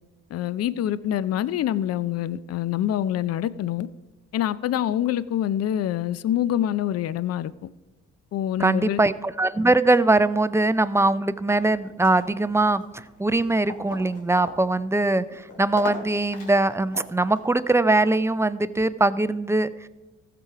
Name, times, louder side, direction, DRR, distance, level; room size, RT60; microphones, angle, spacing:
voice 1, 0.3-3.9 4.3-7.7 8.3-9.0, left 11 dB, 55° left, 17 dB, 0.5 m, -26 dB
voice 2, 8.6-19.9, right 2 dB, 10° right, 14 dB, 0.4 m, -22 dB
sound 1, 11.5-17.6, left 2 dB, 80° left, 2.5 m, -41 dB
15.0 x 6.9 x 4.8 m, 1.1 s
cardioid pair, 90°, 30 cm